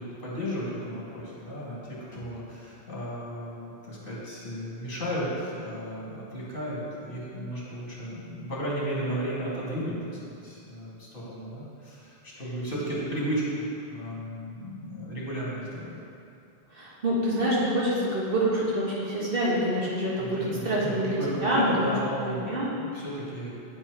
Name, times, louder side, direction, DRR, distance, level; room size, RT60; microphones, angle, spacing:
voice 1, 0.0-10.0 10.3-15.9 20.2-22.5 22.7-23.5, equal, 60° left, -7 dB, 2.1 m, -34 dB
voice 2, 16.7-21.9 22.3-22.7, right 1 dB, 65° right, -8 dB, 1.9 m, -26 dB
8.7 x 4.4 x 4.6 m, 2.6 s
omnidirectional pair, 1.0 m